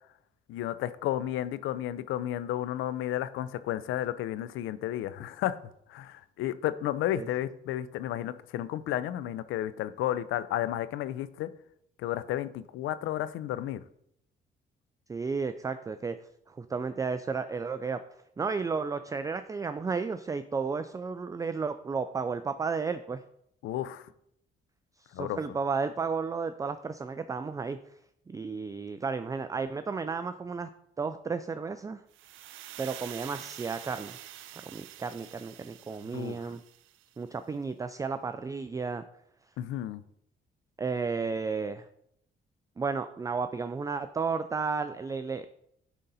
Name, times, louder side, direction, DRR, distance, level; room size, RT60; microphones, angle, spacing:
voice 1, 0.5-5.6 5.9-11.5 12.0-13.8 23.6-24.1 25.1-25.4 36.1-36.4 39.6-40.0, left 12 dB, 85° left, 15 dB, 0.5 m, -32 dB
voice 2, 15.1-16.2 16.5-18.0 18.4-23.2 25.0-27.8 28.3-30.7 31.0-32.0 32.8-34.2 34.7-36.6 37.2-39.0 40.8-41.8 42.8-45.5, right 5 dB, 15° right, 10 dB, 0.3 m, -33 dB
sound 1, 32.1-37.2, right 13 dB, 80° right, 0.5 m, -47 dB
9.1 x 3.9 x 4.1 m, 0.74 s
cardioid pair, 90°, 20 cm